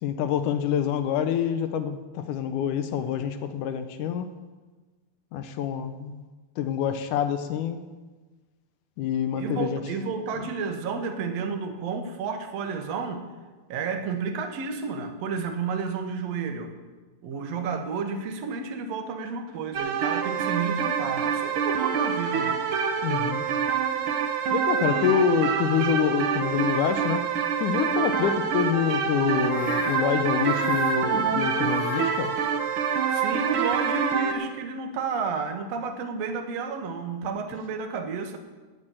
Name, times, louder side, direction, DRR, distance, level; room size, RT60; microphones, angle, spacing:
voice 1, 0.0-4.3 5.3-6.2 6.6-7.8 9.0-9.8 23.0-23.4 24.5-27.2 27.6-32.3, left 8 dB, 75° left, 9 dB, 2.1 m, -26 dB
voice 2, 9.4-13.3 13.7-16.8 17.2-22.6 31.0-31.1 33.1-38.4, right 5 dB, 60° right, 6 dB, 2.0 m, -31 dB
sound 1, 19.7-34.3, right 7 dB, 80° right, 1.1 m, -26 dB
sound 2, 29.4-32.5, left 14 dB, 90° left, 2.3 m, -36 dB
10.5 x 9.7 x 8.8 m, 1.3 s
omnidirectional pair, 4.0 m